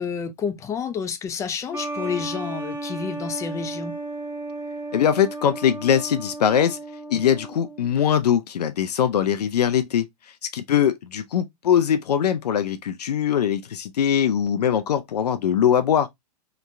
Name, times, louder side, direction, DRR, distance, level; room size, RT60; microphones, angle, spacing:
voice 1, 0.0-3.9, left 6 dB, 15° left, 0.3 m, -29 dB
sound 1, 1.7-8.0, right 2 dB, 10° right, 0.7 m, -34 dB
voice 2, 4.9-6.8 7.1-10.1 10.5-16.1, left 9 dB, 80° left, 0.4 m, -21 dB
2.9 x 2.2 x 2.4 m
hypercardioid pair, 110°, 20 cm